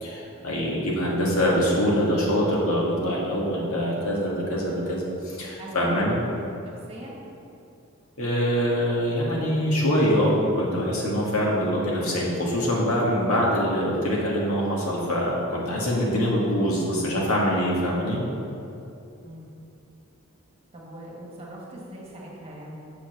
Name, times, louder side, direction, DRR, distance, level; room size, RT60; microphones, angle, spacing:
voice 1, 0.0-6.2 8.2-18.2, equal, 80° left, -4 dB, 1.7 m, -24 dB
voice 2, 5.6-6.2 6.6-7.2 19.2-19.5 20.7-22.7, right 1 dB, 25° right, -4 dB, 1.5 m, -41 dB
6.8 x 4.9 x 6.6 m, 2.7 s
head